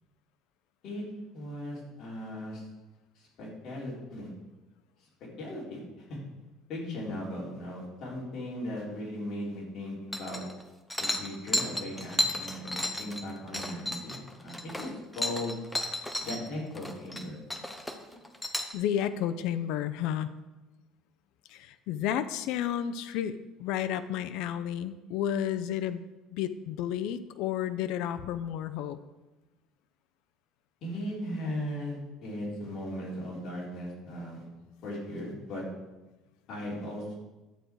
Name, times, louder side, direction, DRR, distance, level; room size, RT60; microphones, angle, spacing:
voice 1, 1.3-2.6 3.4-4.3 5.4-6.2 6.7-10.4 11.0-14.9 15.1-15.6 16.2-17.4 18.1-18.2 30.8-34.5 34.8-35.6 36.5-37.1, left 1 dB, 40° left, -5 dB, 3.9 m, -37 dB
voice 2, 6.9-7.2 18.7-20.3 21.5-23.3 23.6-26.0 26.3-29.0, left 10 dB, 65° left, 10 dB, 0.5 m, -31 dB
sound 1, 10.1-10.6 10.9-16.4 16.7-17.2 17.5-18.7, left 1 dB, 5° left, 0.7 m, -33 dB
11.0 x 7.9 x 4.6 m, 1.1 s
cardioid pair, 170°, 0 cm